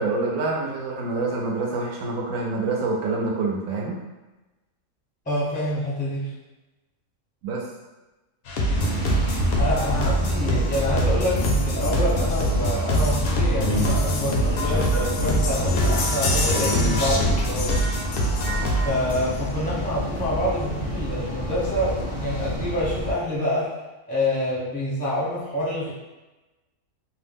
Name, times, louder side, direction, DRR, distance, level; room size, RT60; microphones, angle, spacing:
voice 1, 0.0-4.0 7.4-7.6, right 3 dB, 80° right, -1 dB, 1.0 m, -26 dB
voice 2, 5.3-6.3 9.6-17.8 18.8-23.7 24.1-25.9, left 1 dB, 10° left, -7 dB, 0.4 m, -27 dB
sound 1, 8.5-18.9, equal, 65° left, 0.6 m, -24 dB
sound 2, 8.7-23.1, equal, 30° right, 0.6 m, -29 dB
sound 3, 11.3-19.7 20.8-20.9 21.2-21.3 21.5-21.7 22.0-22.6 23.1-23.2, left 3 dB, 85° left, 1.0 m, -34 dB
2.5 x 2.0 x 3.4 m, 1.1 s
omnidirectional pair, 1.4 m